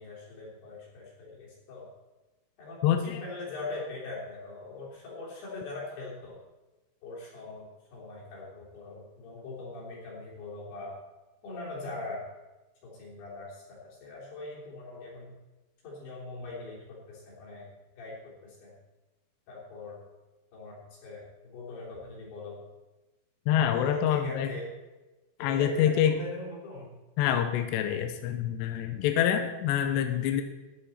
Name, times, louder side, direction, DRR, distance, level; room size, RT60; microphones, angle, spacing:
voice 1, 0.0-1.9 2.6-6.4 7.0-11.0 11.4-12.2 12.8-15.3 15.8-17.7 18.0-18.7 19.5-20.0 20.5-22.6 23.7-24.7 25.4-26.9, left 3 dB, 60° left, -4 dB, 5.1 m, -41 dB
voice 2, 2.8-3.2 23.5-24.5 25.4-26.3 27.2-30.4, left 9 dB, 85° left, 7 dB, 2.6 m, -26 dB
13.5 x 9.8 x 4.3 m, 1.1 s
omnidirectional pair, 5.6 m